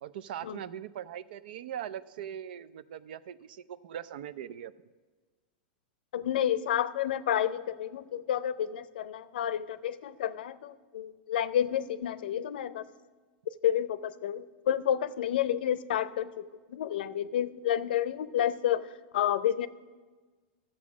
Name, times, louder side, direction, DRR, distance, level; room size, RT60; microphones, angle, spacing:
voice 1, 0.0-4.7, right 10 dB, 75° right, 17 dB, 0.5 m, -40 dB
voice 2, 6.1-12.9 13.5-19.7, left 10 dB, 80° left, 16 dB, 0.5 m, -30 dB
13.5 x 7.5 x 6.0 m, 1.4 s
supercardioid pair, 135°, 5 cm